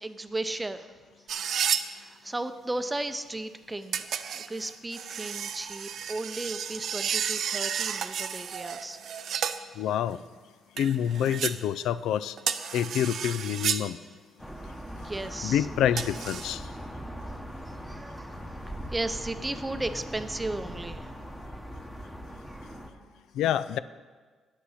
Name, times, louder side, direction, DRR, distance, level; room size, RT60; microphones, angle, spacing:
voice 1, 0.0-0.9 1.9-9.0 14.9-15.7 17.8-18.3 18.8-21.1 22.4-22.7, right 2 dB, 15° right, 10 dB, 0.6 m, -35 dB
sound 1, 1.3-1.9 3.9-9.6 10.8-11.6 12.4-13.9 16.0-16.5, right 8 dB, 65° right, 0.4 m, -32 dB
voice 2, 9.8-10.2 10.8-12.4 12.7-14.0 15.4-16.7 23.3-23.8, left 10 dB, 85° left, 16 dB, 0.3 m, -27 dB
sound 2, 14.4-22.9, equal, 5° left, 1.0 m, -40 dB
8.7 x 8.2 x 5.7 m, 1.4 s
cardioid pair, 90°, 0 cm